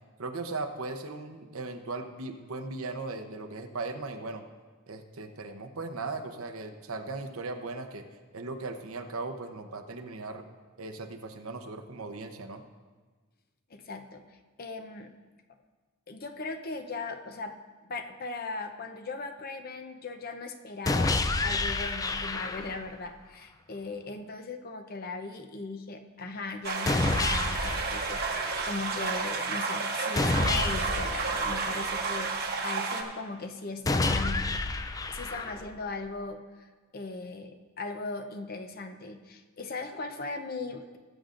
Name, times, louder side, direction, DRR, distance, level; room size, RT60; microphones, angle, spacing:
voice 1, 0.2-4.4 4.9-8.0 8.3-10.5 10.8-12.6, right 3 dB, 75° right, 6 dB, 0.9 m, -38 dB
voice 2, 13.7-14.2 14.6-15.1 16.1-17.5 17.9-34.5 34.8-41.0, left 3 dB, 45° left, 6 dB, 0.7 m, -38 dB
sound 1, 20.9-22.9 26.9-28.9 30.2-32.2 33.9-35.9, left 2 dB, 15° left, 0.3 m, -29 dB
sound 2, 26.6-33.0, right 4 dB, 45° right, 1.0 m, -31 dB
19.5 x 7.9 x 2.6 m, 1.4 s
head